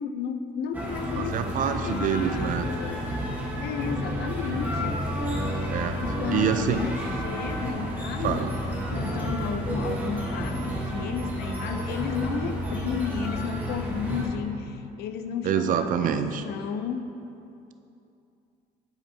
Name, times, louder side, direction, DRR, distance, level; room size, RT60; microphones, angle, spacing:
voice 1, 0.0-3.1 3.6-5.1 6.0-8.5 8.9-17.1, left 7 dB, 70° left, 9 dB, 0.4 m, -33 dB
sound 1, 0.7-14.3, equal, 10° right, 1.0 m, -30 dB
voice 2, 1.2-2.7 5.7-6.0 6.3-6.8 8.2-8.5 15.4-16.4, right 8 dB, 50° right, 8 dB, 0.4 m, -26 dB
10.5 x 4.4 x 2.7 m, 2.7 s
cardioid pair, 110°, 17 cm